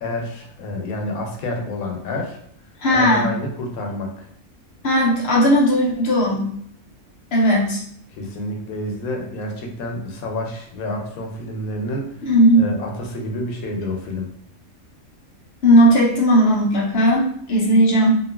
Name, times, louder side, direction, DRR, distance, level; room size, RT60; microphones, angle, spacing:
voice 1, 0.0-2.4 2.9-4.3 8.1-14.3, left 1 dB, 85° left, 2 dB, 1.1 m, -29 dB
voice 2, 2.8-3.3 4.8-6.5 7.3-7.8 12.2-12.6 15.6-18.2, equal, 60° left, -2 dB, 0.7 m, -16 dB
2.9 x 2.5 x 2.3 m, 0.64 s
omnidirectional pair, 1.5 m